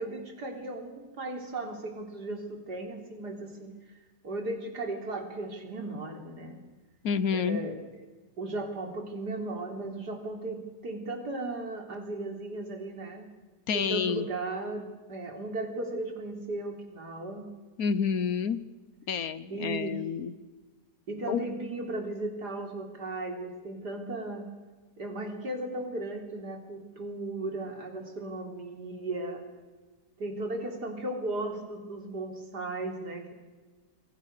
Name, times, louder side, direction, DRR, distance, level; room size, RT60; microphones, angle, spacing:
voice 1, 0.0-3.9 4.2-6.6 7.3-7.8 8.4-13.3 13.7-17.5 19.5-20.0 21.1-24.5 25.0-29.4 30.2-33.3, right 2 dB, 75° right, 4 dB, 4.3 m, -36 dB
voice 2, 7.0-7.6 13.7-14.3 17.8-18.6 19.1-20.3 21.3-21.5, left 6 dB, 65° left, 15 dB, 1.4 m, -29 dB
29.0 x 22.0 x 6.7 m, 1.3 s
omnidirectional pair, 1.7 m